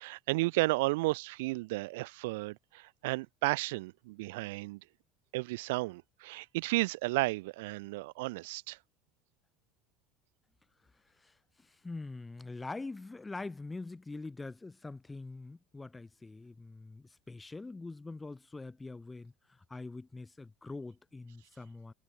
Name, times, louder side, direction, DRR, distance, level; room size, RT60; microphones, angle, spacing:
voice 1, 0.0-4.8 5.3-8.8, right 22 dB, 80° right, 0.7 m, -33 dB
voice 2, 10.9-21.9, left 3 dB, 15° left, 2.2 m, -44 dB
supercardioid pair, 115°, 0 cm